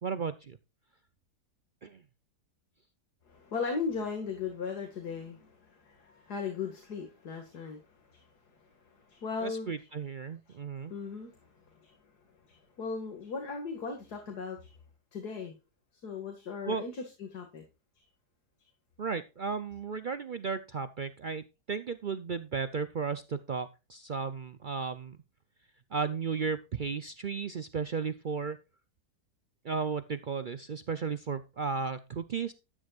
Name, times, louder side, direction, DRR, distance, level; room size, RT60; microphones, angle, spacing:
voice 1, 0.0-0.6 1.8-2.0 9.4-10.9 16.6-16.8 19.0-25.2 25.9-28.6 29.6-32.5, right 5 dB, 65° right, 12 dB, 0.5 m, -34 dB
voice 2, 3.3-7.8 8.1-8.3 8.9-9.7 10.9-11.4 11.8-11.9 12.5-14.7 15.1-15.6 16.0-17.6, left 5 dB, 85° left, 4 dB, 2.6 m, -37 dB
12.5 x 9.6 x 2.4 m, 0.28 s
omnidirectional pair, 1.7 m